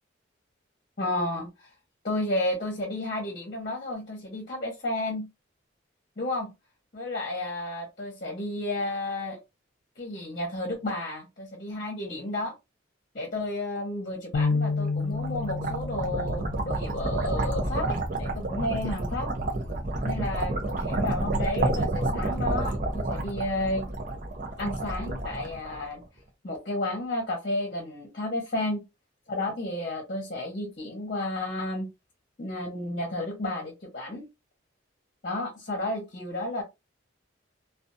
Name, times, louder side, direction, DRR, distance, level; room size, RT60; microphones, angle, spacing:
voice 1, 1.0-1.7 2.0-5.3 6.2-6.5 6.9-9.4 10.0-12.5 13.1-19.3 20.0-23.9 24.6-26.0 26.4-28.8 29.3-31.9 32.4-34.3 35.2-36.6, left 1 dB, 45° left, 0.8 m, -32 dB
sound 1, 14.3-20.6, left 4 dB, 75° left, 0.3 m, -33 dB
sound 2, 14.9-26.0, right 2 dB, 45° right, 0.6 m, -30 dB
2.5 x 2.3 x 2.6 m
head